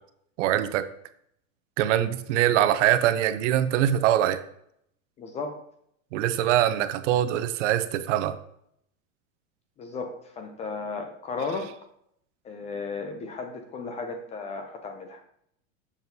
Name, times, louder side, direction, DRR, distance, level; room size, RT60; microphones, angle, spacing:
voice 1, 0.4-0.9 1.8-4.4 6.1-8.4, right 12 dB, 65° right, 11 dB, 0.7 m, -23 dB
voice 2, 5.2-5.6 9.8-11.7 12.4-15.2, left 4 dB, 20° left, 6 dB, 0.4 m, -34 dB
7.0 x 6.0 x 2.7 m, 0.72 s
supercardioid pair, 140°, 39 cm